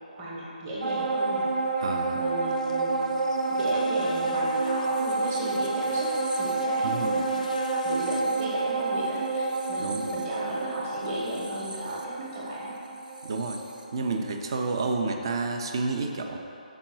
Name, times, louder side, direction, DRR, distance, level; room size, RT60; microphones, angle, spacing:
voice 1, 0.1-1.9 2.1-3.2 3.5-7.6 7.8-12.8, right 1 dB, 15° right, -5 dB, 1.0 m, -35 dB
sound 1, 0.8-14.5 14.9-15.0, right 3 dB, 70° right, 0.8 m, -29 dB
voice 2, 1.8-2.2 6.8-7.1 9.8-10.1 13.2-13.6 13.9-16.4, right 3 dB, 35° right, 4 dB, 0.5 m, -30 dB
sound 2, 2.5-8.2, left 3 dB, 60° left, 0.4 m, -40 dB
5.1 x 4.6 x 6.0 m, 2.9 s
hypercardioid pair, 170°, 5 cm